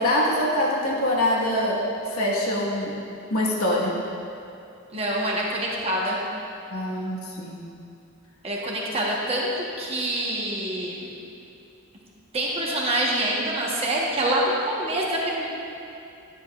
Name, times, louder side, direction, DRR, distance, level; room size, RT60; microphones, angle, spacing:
voice 1, 0.0-1.8 2.1-2.9 3.3-3.9 6.7-7.6, left 1 dB, 85° left, -4 dB, 1.4 m, -24 dB
voice 2, 4.9-6.2 8.4-11.1 12.3-15.5, right 1 dB, 30° right, -3 dB, 1.1 m, -26 dB
10.0 x 9.6 x 2.4 m, 2.6 s
head